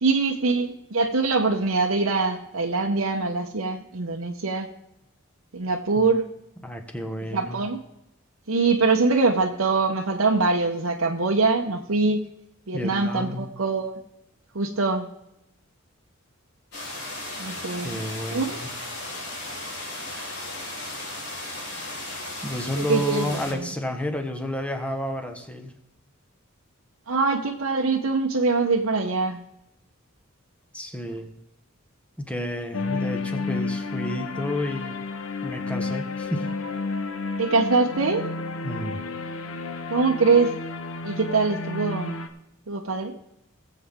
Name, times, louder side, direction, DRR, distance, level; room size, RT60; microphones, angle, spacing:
voice 1, 0.0-4.7 5.5-6.2 7.3-7.8 8.5-12.2 12.7-14.0 14.5-15.1 17.4-18.0 18.3-18.6 22.8-23.7 27.1-29.4 37.4-38.3 39.9-40.5 41.0-42.2 42.7-43.1, right 3 dB, 80° right, 1 dB, 1.0 m, -23 dB
voice 2, 6.6-7.6 12.7-13.5 17.8-18.7 22.4-25.7 30.7-31.3 32.2-34.9 35.4-36.5 38.6-39.0, left 1 dB, 5° left, 5 dB, 1.3 m, -31 dB
sound 1, 16.7-23.5, left 2 dB, 50° left, 4.4 m, -35 dB
sound 2, 32.7-42.3, left 3 dB, 75° left, 1.1 m, -31 dB
19.5 x 7.8 x 3.7 m, 0.83 s
head